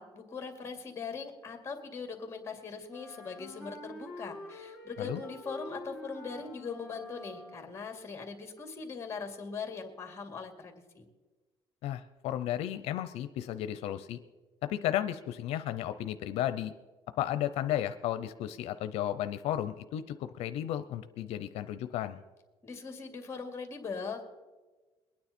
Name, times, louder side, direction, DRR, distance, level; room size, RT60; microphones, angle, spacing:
voice 1, 0.0-11.1 22.6-24.4, left 5 dB, 25° left, 5 dB, 2.2 m, -41 dB
Wind instrument woodwind instrument, 2.9-7.9, left 1 dB, ahead, 2.1 m, -47 dB
voice 2, 11.8-14.2 14.6-16.7 17.2-22.2, left 12 dB, 85° left, 10 dB, 0.6 m, -33 dB
22.0 x 9.6 x 4.3 m, 1.2 s
cardioid pair, 135°, 10 cm